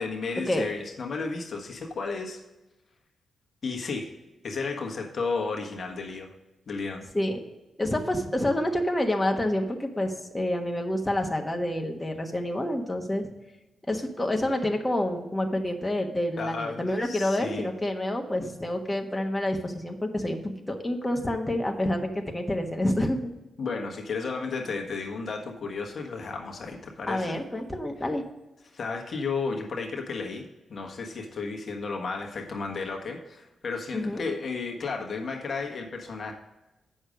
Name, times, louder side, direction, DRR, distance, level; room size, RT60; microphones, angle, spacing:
voice 1, 0.0-2.4 3.6-4.1 4.4-6.3 6.7-7.1 16.4-17.7 23.6-27.4 28.7-36.3, left 4 dB, 55° left, 2 dB, 1.3 m, -33 dB
voice 2, 7.8-13.3 13.9-20.4 20.7-23.3 27.1-28.2 33.9-34.2, left 1 dB, 20° left, 3 dB, 1.3 m, -28 dB
7.9 x 6.5 x 5.1 m, 1.0 s
supercardioid pair, 45°, 0 cm